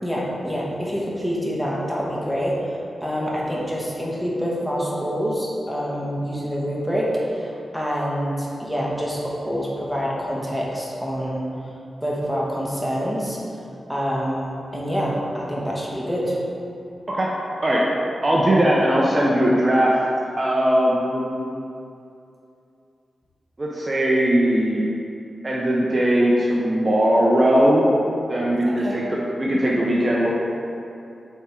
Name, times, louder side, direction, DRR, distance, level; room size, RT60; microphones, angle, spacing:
voice 1, 0.0-2.6 3.0-11.4 12.0-13.4 13.9-16.4 28.7-29.0, equal, 5° left, -5 dB, 1.1 m, -26 dB
voice 2, 18.2-19.9 20.4-21.5 23.6-24.9 25.4-27.9 28.3-30.4, right 1 dB, 25° right, -5 dB, 0.7 m, -19 dB
7.2 x 3.6 x 4.4 m, 2.6 s
wide cardioid pair, 135°, 0 cm